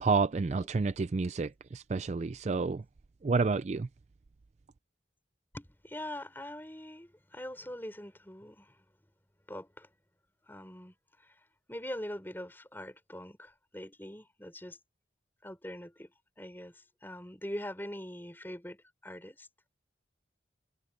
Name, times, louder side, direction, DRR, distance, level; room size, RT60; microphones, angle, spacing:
voice 1, 0.0-2.8 3.2-3.9, right 4 dB, 35° right, 0.3 m, -29 dB
voice 2, 5.5-8.8 9.5-9.9 10.5-11.3 11.7-14.8 15.4-16.1 16.4-19.5, left 1 dB, 10° left, 5.1 m, -43 dB
head